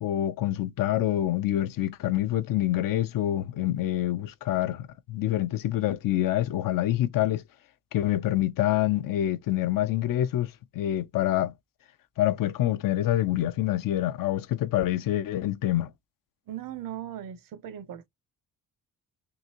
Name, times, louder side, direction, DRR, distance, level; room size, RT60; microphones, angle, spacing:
voice 1, 0.0-7.4 7.9-11.5 12.2-15.9, left 13 dB, 70° left, 0.6 m, -26 dB
voice 2, 16.5-18.1, right 11 dB, 70° right, 0.9 m, -38 dB
3.8 x 2.6 x 2.9 m
cardioid pair, 70°, 35 cm